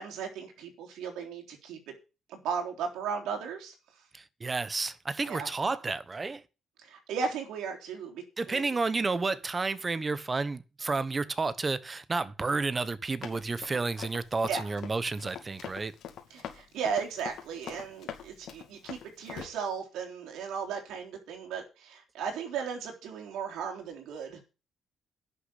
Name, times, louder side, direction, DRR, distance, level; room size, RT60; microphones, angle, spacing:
voice 1, 0.0-1.9 2.3-3.7 5.3-5.5 6.8-8.6 14.5-14.6 16.3-24.4, right 6 dB, 90° right, 3.6 m, -36 dB
voice 2, 4.1-6.4 8.4-15.9, right 3 dB, 30° right, 1.1 m, -31 dB
Run, 13.2-19.5, left 9 dB, 80° left, 2.6 m, -43 dB
11.0 x 6.7 x 8.3 m
cardioid pair, 90°, 0 cm